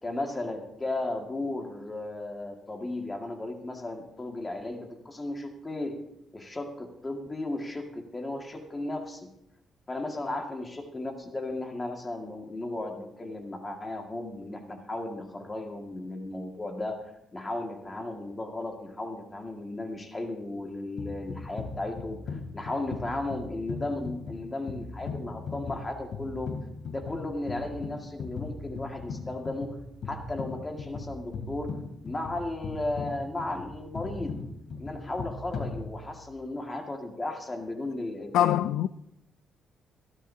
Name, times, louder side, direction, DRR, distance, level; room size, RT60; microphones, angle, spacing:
voice 1, 0.0-6.0 6.3-9.3 9.9-17.0 17.3-26.5 26.9-29.8 30.1-31.7 32.0-34.4 34.8-38.6, left 2 dB, 20° left, 2.0 m, -35 dB
sound 1, 21.0-36.3, left 4 dB, 65° left, 2.9 m, -39 dB
voice 2, 38.3-38.9, left 11 dB, 85° left, 0.4 m, -23 dB
23.5 x 12.0 x 2.8 m
cardioid pair, 90°, 0 cm